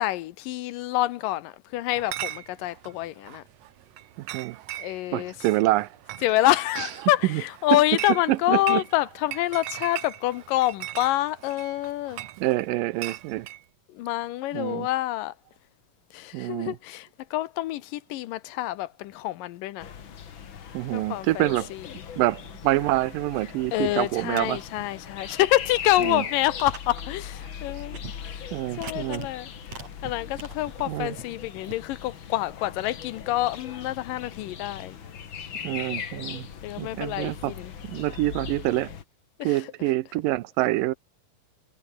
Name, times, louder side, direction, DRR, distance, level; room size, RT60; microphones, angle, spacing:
voice 1, 0.0-3.4 4.8-5.3 6.2-12.2 13.9-15.3 16.1-19.9 20.9-21.9 23.7-28.0 28.3-28.5 28.8-29.5 30.0-35.0 36.6-37.7 39.4-39.7, left 15 dB, 80° left, 2.5 m, -27 dB
Chatter / Chink clink, 1.9-13.6, right 14 dB, 70° right, 1.6 m, -40 dB
voice 2, 4.2-4.6 5.1-5.9 6.8-6.9 7.3-7.4 8.3-8.8 12.4-13.5 14.5-14.9 16.3-16.8 20.7-21.7 22.2-24.6 26.0-26.2 28.5-29.2 30.9-31.2 35.6-36.5 36.8-37.5 37.8-38.9 39.4-40.9, right 17 dB, 90° right, 2.5 m, -26 dB
sound 1, 19.8-39.0, left 7 dB, 45° left, 2.0 m, -39 dB
sound 2, 23.7-23.9 24.2-24.8 25.3-25.4 26.1-26.2 26.6-27.1 27.4-27.5 27.9-28.2 28.7-29.3 29.6-31.8, right 4 dB, 50° right, 6.4 m, -42 dB
omnidirectional pair, 3.9 m